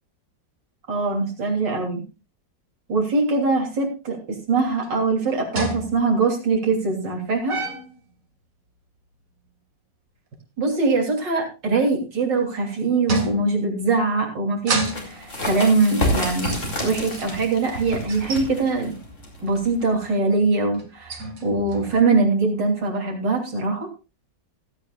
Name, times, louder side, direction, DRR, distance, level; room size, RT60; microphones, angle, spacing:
voice 1, 0.9-2.0 2.9-7.6 10.6-16.6 16.8-19.0 19.4-23.9, right 3 dB, 80° right, 1 dB, 3.9 m, -22 dB
sound 1, 4.8-4.9 5.6-6.2 7.5-8.0 12.1-12.5 13.1-13.8 14.5-15.3 16.3-18.5 18.9-19.2 20.7-22.0, right 2 dB, 50° right, 2.4 m, -29 dB
sound 2, 14.7-20.1, left 1 dB, 40° left, 4.5 m, -29 dB
16.5 x 13.0 x 2.4 m, 0.29 s
omnidirectional pair, 1.9 m